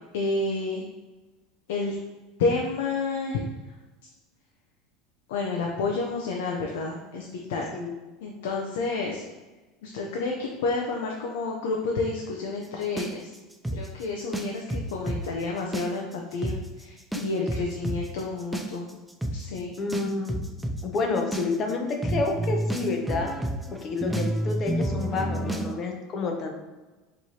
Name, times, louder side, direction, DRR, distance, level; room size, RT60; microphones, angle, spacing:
voice 1, 0.1-0.8 1.7-2.0 2.4-3.4 5.3-7.7 8.2-9.2 9.8-13.3 13.7-16.5 16.8-18.9 19.3-19.7 25.1-25.6, left 3 dB, 90° left, 0 dB, 0.5 m, -30 dB
sound 1, 13.0-15.2 15.6-16.1 16.4-16.6 17.1-25.7, right 1 dB, 5° right, 0.3 m, -29 dB
voice 2, 19.8-20.5 20.8-23.3 23.8-26.5, left 3 dB, 35° left, 3 dB, 0.7 m, -29 dB
4.5 x 3.1 x 2.8 m, 1.2 s
supercardioid pair, 135°, 0 cm